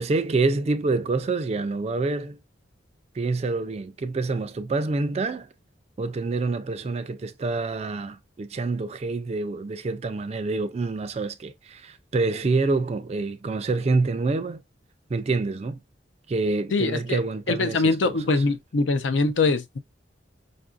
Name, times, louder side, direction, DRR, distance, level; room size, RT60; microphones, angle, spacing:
voice 1, 0.0-2.4 3.1-5.5 6.0-14.6 15.1-15.8 16.3-18.4, right 3 dB, 35° right, 0.3 m, -27 dB
voice 2, 16.7-17.2 17.5-19.8, left 3 dB, 75° left, 0.6 m, -23 dB
5.2 x 2.5 x 2.4 m
head